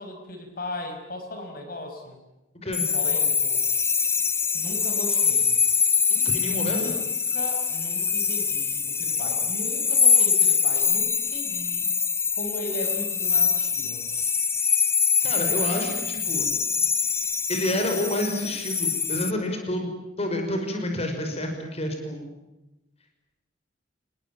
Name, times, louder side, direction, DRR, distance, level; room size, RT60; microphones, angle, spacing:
voice 1, 0.0-2.2 2.9-3.6 4.5-5.6 6.5-11.9 12.4-14.1, left 1 dB, 50° left, 4 dB, 5.4 m, -37 dB
sound 1, 2.7-19.3, left 6 dB, 15° left, 0.9 m, -24 dB
voice 2, 6.1-6.8 15.2-16.5 17.5-19.9 20.2-22.3, left 1 dB, 35° left, 4 dB, 5.5 m, -29 dB
28.0 x 20.5 x 9.1 m, 0.99 s
head